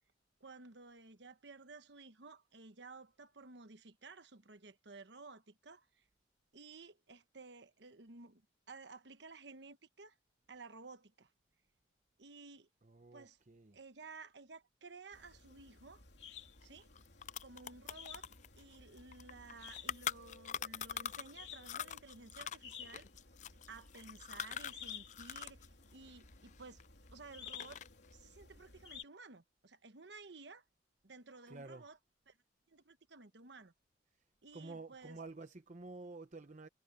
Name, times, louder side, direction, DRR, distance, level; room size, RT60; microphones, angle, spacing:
voice 1, 0.4-6.0 6.5-8.4 8.7-10.2 10.5-11.3 12.2-12.7 13.1-13.4 13.7-16.0 16.6-16.9 17.4-18.3 18.6-23.1 23.7-26.8 27.1-27.8 28.1-30.6 31.0-32.0 32.3-32.4 32.7-33.7 34.4-35.2, right 3 dB, 65° right, 1.2 m, -54 dB
voice 2, 12.8-13.8 31.5-31.9 34.5-36.7, right 3 dB, 40° right, 0.8 m, -50 dB
sound 1, 15.1-29.0, left 7 dB, 65° left, 3.6 m, -54 dB
sound 2, 16.6-16.7 16.9-21.3 21.6-25.7 25.9-27.1 27.4-28.0, left 9 dB, 40° left, 0.4 m, -43 dB
head